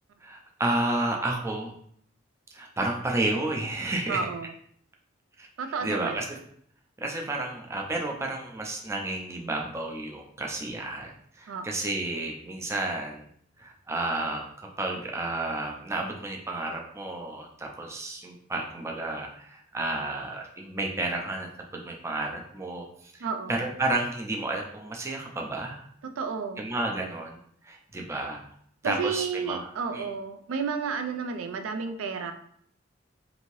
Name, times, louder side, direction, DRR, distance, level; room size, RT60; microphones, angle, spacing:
voice 1, 0.2-1.7 2.5-4.3 5.4-5.5 5.8-6.4 7.0-13.3 13.6-25.9 26.6-27.4 27.6-28.4 28.8-30.1, right 2 dB, 15° right, 0 dB, 0.4 m, -31 dB
voice 2, 4.1-4.5 5.6-6.2 11.5-11.8 23.2-23.5 26.0-26.7 28.1-28.2 28.8-32.3, right 5 dB, 90° right, 7 dB, 0.3 m, -32 dB
2.7 x 2.6 x 3.0 m, 0.65 s
head